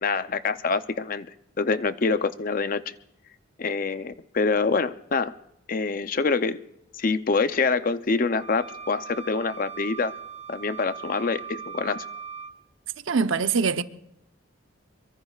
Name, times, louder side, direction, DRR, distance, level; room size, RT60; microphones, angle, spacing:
voice 1, 0.0-1.3 1.6-2.9 3.6-5.3 5.7-6.6 6.9-10.1 10.5-12.0, left 4 dB, 45° left, 0.6 m, -25 dB
sound 1, 8.4-12.5, right 7 dB, 30° right, 1.1 m, -39 dB
voice 2, 13.1-13.8, right 5 dB, 85° right, 0.7 m, -23 dB
24.0 x 23.0 x 2.4 m
head